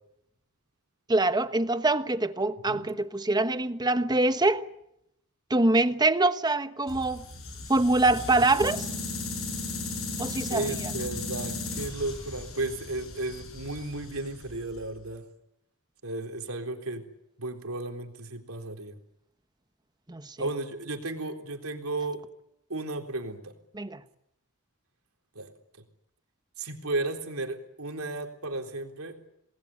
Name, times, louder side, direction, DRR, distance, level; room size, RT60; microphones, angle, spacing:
voice 1, 1.1-4.7 5.5-7.2 7.7-8.9 10.2-10.7 20.1-20.4 23.7-24.0, right 2 dB, 20° right, 1.1 m, -24 dB
sound 1, 6.9-15.0, left 3 dB, 70° left, 7.3 m, -36 dB
voice 2, 10.5-15.3 16.0-17.1 17.4-19.0 20.4-22.2 22.7-23.5 25.3-25.5 26.6-29.2, right 2 dB, 75° right, 3.9 m, -34 dB
28.0 x 20.0 x 8.5 m
head